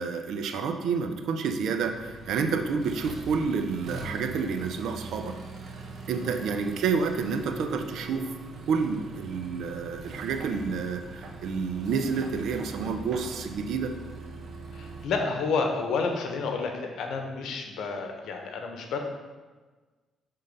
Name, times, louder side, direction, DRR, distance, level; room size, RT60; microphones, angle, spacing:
voice 1, 0.0-5.4 6.1-8.3 8.7-13.9, right 5 dB, 75° right, 6 dB, 0.6 m, -29 dB
Accelerating revving vroom, 1.8-15.0, right 2 dB, 55° right, 1.0 m, -42 dB
voice 2, 14.7-19.0, left 4 dB, 75° left, 4 dB, 1.0 m, -30 dB
6.7 x 3.8 x 5.3 m, 1.3 s
cardioid pair, 90°, 0 cm